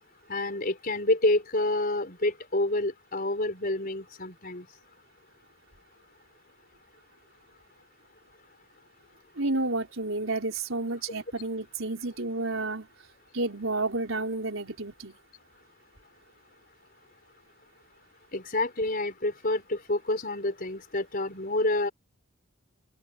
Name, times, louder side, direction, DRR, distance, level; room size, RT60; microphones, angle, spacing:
voice 1, 0.3-4.7 18.3-21.9, left 2 dB, 40° left, 4.7 m, -28 dB
voice 2, 9.4-12.9 13.3-15.1, right 2 dB, 65° right, 4.7 m, -30 dB
open air
head